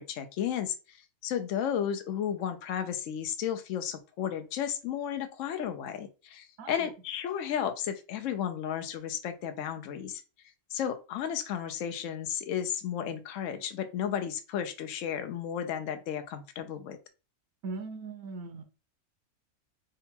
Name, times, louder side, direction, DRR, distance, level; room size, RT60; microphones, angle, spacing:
voice 1, 0.0-10.2 10.7-17.0, left 9 dB, 65° left, 8 dB, 0.9 m, -33 dB
voice 2, 17.6-18.6, right 3 dB, 75° right, 5 dB, 1.3 m, -39 dB
3.8 x 2.3 x 4.3 m, 0.32 s
omnidirectional pair, 1.5 m